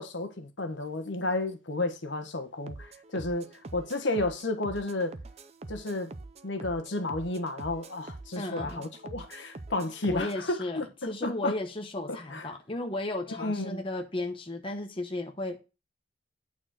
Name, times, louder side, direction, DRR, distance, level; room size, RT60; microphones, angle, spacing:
voice 1, 0.0-5.1 5.7-6.1 6.4-11.6 12.1-12.5 13.4-13.8, left 2 dB, 75° left, 1.3 m, -32 dB
sound 1, 2.7-10.4, right 2 dB, 35° right, 0.5 m, -45 dB
voice 2, 8.4-8.8 10.1-15.6, left 2 dB, 30° left, 0.9 m, -34 dB
8.8 x 4.3 x 6.1 m
head